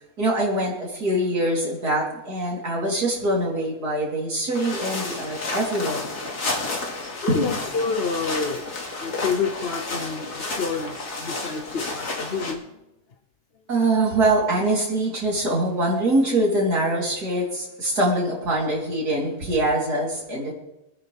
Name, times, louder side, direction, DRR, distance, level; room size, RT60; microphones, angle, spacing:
voice 1, 0.2-6.0 7.3-7.4 13.7-20.5, right 1 dB, 70° right, -4 dB, 4.4 m, -23 dB
sound 1, 4.5-12.5, left 3 dB, 70° left, 2.9 m, -31 dB
voice 2, 7.2-8.6 9.0-12.8, left 5 dB, 45° left, 5 dB, 1.0 m, -28 dB
25.5 x 10.0 x 3.6 m, 0.92 s
omnidirectional pair, 1.8 m